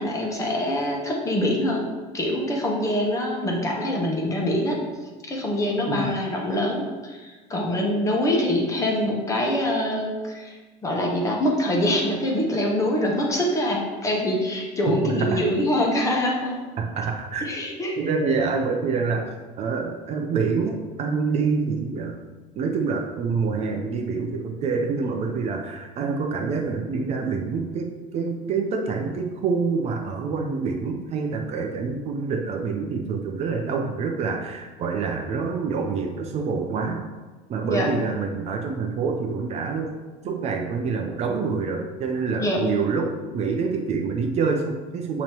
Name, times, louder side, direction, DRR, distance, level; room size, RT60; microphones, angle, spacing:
voice 1, 0.0-1.9 2.1-4.8 5.2-10.5 10.8-16.6 17.4-18.4 37.7-37.9 42.4-42.6, left 1 dB, 20° left, -1 dB, 1.2 m, -24 dB
voice 2, 15.0-15.4 16.8-17.5 18.0-19.3 19.6-22.3 22.6-37.1 37.5-39.9 40.2-45.2, right 5 dB, 40° right, 3 dB, 0.6 m, -26 dB
7.0 x 3.1 x 4.5 m, 1.3 s
cardioid pair, 140°, 16 cm